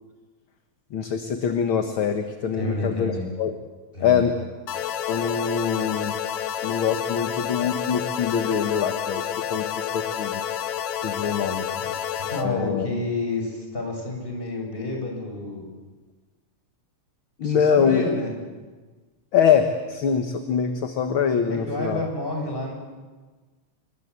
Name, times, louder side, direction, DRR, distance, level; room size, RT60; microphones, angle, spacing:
voice 1, 0.9-3.5 4.0-4.5 5.1-6.1 6.6-9.2 9.5-10.4 11.0-11.7 12.4-12.9 17.4-18.1 19.3-22.0, left 7 dB, 50° left, 6 dB, 2.0 m, -24 dB
voice 2, 2.6-3.3 3.9-4.3 11.7-11.9 12.2-15.7 17.4-18.3 21.5-22.7, left 2 dB, 15° left, 1 dB, 6.6 m, -29 dB
sound 1, 4.7-12.5, left 10 dB, 75° left, 2.4 m, -29 dB
29.5 x 22.5 x 8.3 m, 1.3 s
omnidirectional pair, 3.4 m